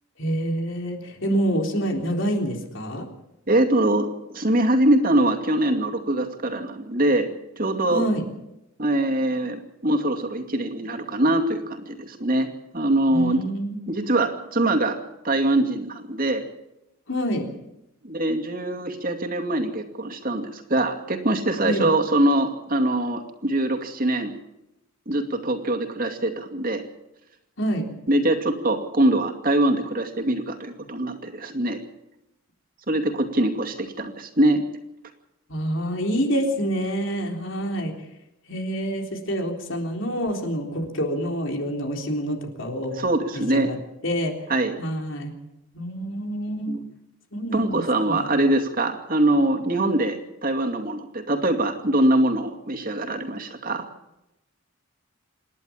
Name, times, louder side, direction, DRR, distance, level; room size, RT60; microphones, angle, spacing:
voice 1, 0.2-3.1 7.9-8.2 13.1-13.8 17.1-17.5 21.6-21.9 27.6-27.9 35.5-37.9 38.5-43.1 43.5-43.8 44.0-44.3 44.8-45.3 45.7-46.8 47.3-48.3, equal, 65° left, 3 dB, 3.7 m, -27 dB
voice 2, 3.5-7.3 7.6-8.0 8.8-12.5 12.7-13.4 13.9-15.0 15.2-16.5 18.0-24.3 25.1-26.8 28.1-31.8 32.9-34.6 43.0-43.7 44.5-44.8 46.7-46.8 47.5-53.8, right 1 dB, 40° right, 5 dB, 2.5 m, -23 dB
27.5 x 11.0 x 8.7 m, 0.88 s
head